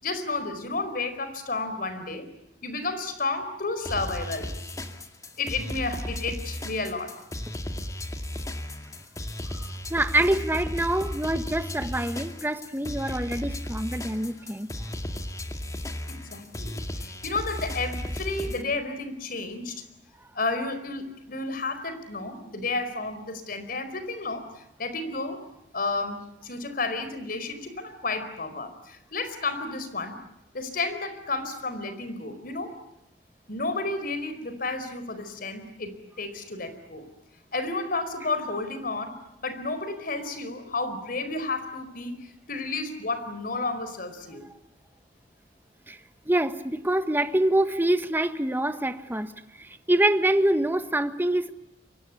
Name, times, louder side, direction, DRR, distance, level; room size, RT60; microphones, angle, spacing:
voice 1, 0.0-2.3 2.6-4.6 5.4-7.1 16.1-19.8 20.3-25.4 25.7-30.2 30.5-32.7 33.5-37.0 37.5-39.1 39.4-44.4, left 3 dB, 50° left, 4.7 m, -32 dB
sound 1, 3.8-18.6, left 1 dB, 20° left, 2.2 m, -35 dB
voice 2, 9.9-14.7 45.9-46.0 46.3-49.3 49.6-51.5, right 1 dB, 10° right, 1.4 m, -25 dB
29.0 x 24.5 x 8.4 m
head